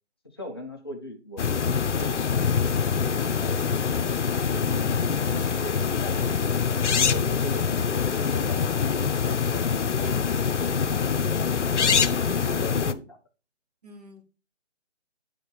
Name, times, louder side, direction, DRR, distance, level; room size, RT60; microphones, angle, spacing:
voice 1, 0.3-4.2 4.5-6.5 6.9-10.2 10.6-13.2, left 1 dB, 20° left, 2 dB, 0.8 m, -40 dB
sound 1, 1.4-12.9, left 6 dB, 75° left, 0.7 m, -25 dB
voice 2, 13.8-14.3, left 2 dB, 35° right, 4 dB, 1.2 m, -51 dB
10.0 x 3.4 x 4.2 m, 0.32 s
figure-of-eight pair, 165°, 36 cm